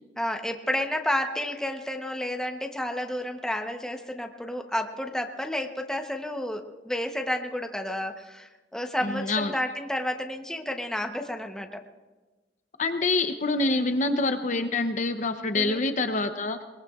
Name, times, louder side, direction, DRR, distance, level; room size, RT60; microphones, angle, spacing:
voice 1, 0.2-11.8 13.7-13.9 15.5-15.8, left 1 dB, 5° left, 4 dB, 0.9 m, -31 dB
voice 2, 9.0-9.5 12.8-16.6, left 2 dB, 45° left, 8 dB, 0.7 m, -26 dB
22.0 x 21.0 x 2.4 m, 1.3 s
head